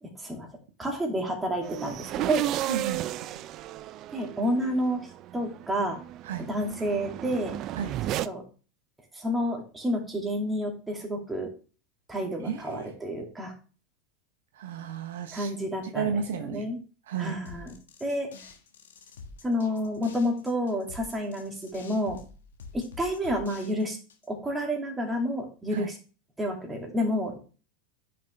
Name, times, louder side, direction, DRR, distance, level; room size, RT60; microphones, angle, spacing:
voice 1, 0.0-0.5 0.8-2.4 4.1-5.1 5.3-6.0 6.4-7.5 8.2-8.4 9.1-11.5 12.1-13.5 15.3-16.8 17.2-17.7 18.0-18.3 19.4-22.2 22.7-24.0 24.3-25.9 26.4-27.4, equal, 15° right, 1 dB, 2.7 m, -30 dB
sound 1, 1.6-8.3, right 13 dB, 45° right, 0.4 m, -34 dB
voice 2, 2.7-3.1 6.2-6.4 7.8-7.9 12.4-12.9 14.6-15.5 15.8-16.6 17.1-17.4 25.7-25.9, right 7 dB, 75° right, 7 dB, 1.0 m, -32 dB
sound 2, 17.4-24.3, left 4 dB, 80° left, 1.4 m, -47 dB
9.8 x 6.0 x 3.4 m, 0.37 s
hypercardioid pair, 90°, 0 cm